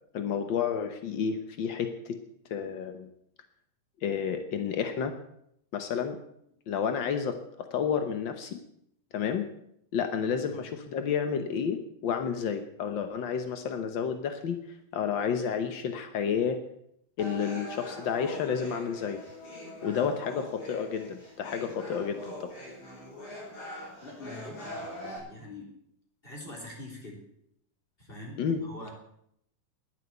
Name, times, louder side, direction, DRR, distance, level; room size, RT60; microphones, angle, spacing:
voice 1, 0.1-2.2 2.5-3.1 4.0-5.1 5.7-6.2 6.7-8.6 9.1-9.5 9.9-14.6 14.9-16.6 17.2-19.2 19.8-22.5 28.4-28.6, left 7 dB, 80° left, 7 dB, 1.0 m, -30 dB
sound 1, 17.2-25.2, equal, 50° left, 5.0 m, -42 dB
voice 2, 19.8-20.2 24.0-25.7 26.2-27.2 28.0-28.9, left 1 dB, 15° left, -1 dB, 3.7 m, -44 dB
11.0 x 10.5 x 8.2 m, 0.73 s
omnidirectional pair, 3.6 m